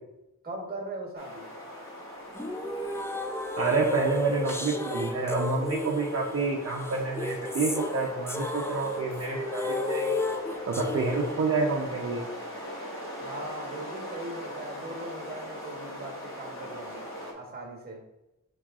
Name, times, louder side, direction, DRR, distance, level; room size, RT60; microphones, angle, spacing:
voice 1, 0.4-1.5 13.2-18.0, right 2 dB, 30° right, 0 dB, 1.2 m, -40 dB
sound 1, 1.2-17.3, equal, 40° left, 1.2 m, -41 dB
sound 2, 2.4-11.3, left 2 dB, 10° left, 0.3 m, -33 dB
voice 2, 3.6-10.2 10.7-12.3, right 3 dB, 55° right, -1 dB, 0.6 m, -28 dB
6.0 x 2.4 x 3.5 m, 0.93 s
wide cardioid pair, 65°, 31 cm